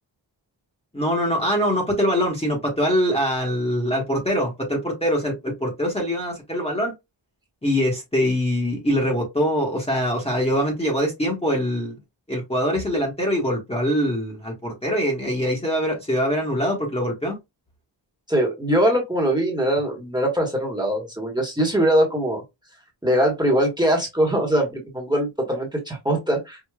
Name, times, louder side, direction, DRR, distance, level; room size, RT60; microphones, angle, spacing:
voice 1, 0.9-6.9 7.6-12.0 12.3-17.4, equal, 15° left, 1.1 m, -23 dB
voice 2, 18.3-22.4 23.0-26.6, right 1 dB, 10° right, 1.2 m, -22 dB
4.8 x 2.3 x 2.2 m
wide cardioid pair, 105°, 45 cm